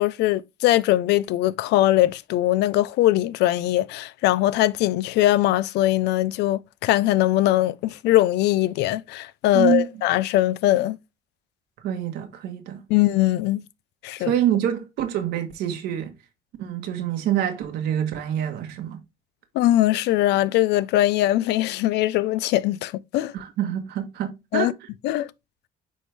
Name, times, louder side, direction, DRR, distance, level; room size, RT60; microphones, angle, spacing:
voice 1, 0.0-11.0 12.9-13.6 14.0-14.3 19.5-23.3 24.5-24.7 25.0-25.3, left 15 dB, 85° left, 0.5 m, -21 dB
voice 2, 9.5-9.9 11.8-12.8 14.2-16.1 16.6-19.0 23.3-24.9, right 10 dB, 80° right, 1.4 m, -26 dB
9.3 x 3.3 x 3.4 m
cardioid pair, 110°, 17 cm